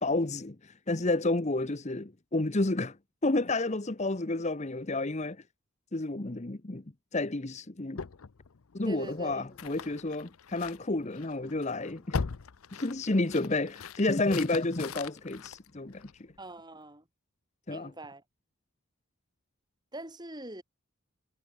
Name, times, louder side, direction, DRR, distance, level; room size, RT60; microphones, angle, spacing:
voice 1, 0.0-3.0 3.2-5.4 5.9-6.8 7.1-8.0 8.7-12.2 12.7-16.3 17.7-17.9, left 2 dB, 30° left, 1.0 m, -30 dB
sound 1, 7.9-16.4, left 5 dB, 80° left, 0.7 m, -41 dB
voice 2, 8.8-9.4 16.4-17.0 17.7-18.2 19.9-20.6, right 1 dB, 20° right, 7.2 m, -43 dB
head